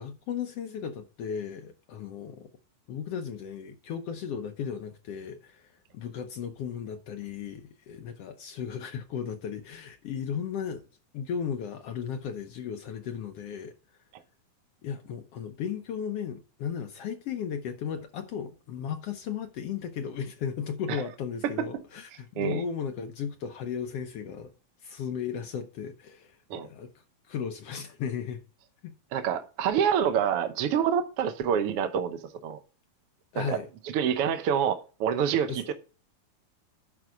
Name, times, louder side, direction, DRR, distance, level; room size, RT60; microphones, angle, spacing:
voice 1, 0.0-2.5 2.9-10.8 11.1-13.7 14.8-24.5 24.8-28.4 28.8-28.9 33.3-33.7 35.5-35.7, left 7 dB, 80° left, 1.4 m, -35 dB
voice 2, 29.1-32.6 33.3-33.6 33.9-35.7, right 8 dB, 70° right, 1.4 m, -27 dB
10.5 x 5.3 x 4.7 m
omnidirectional pair, 3.7 m